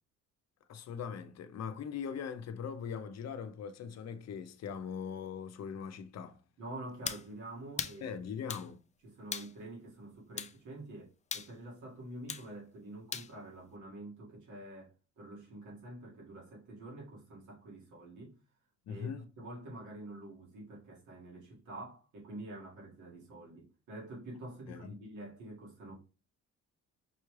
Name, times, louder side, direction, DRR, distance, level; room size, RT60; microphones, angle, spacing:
voice 1, 0.7-6.4 8.0-8.8 18.9-19.2 24.7-24.9, left 7 dB, 60° left, 0.7 m, -41 dB
voice 2, 6.6-8.4 9.0-18.4 18.9-26.0, right 1 dB, 75° right, 1.9 m, -47 dB
sound 1, 7.0-7.3 7.8-8.0 8.5-8.7 9.3-9.5 10.4-10.5 11.3-11.5 12.3-12.5 13.1-13.3, left 6 dB, 25° left, 0.4 m, -38 dB
5.6 x 2.3 x 3.2 m
cardioid pair, 90°, 30 cm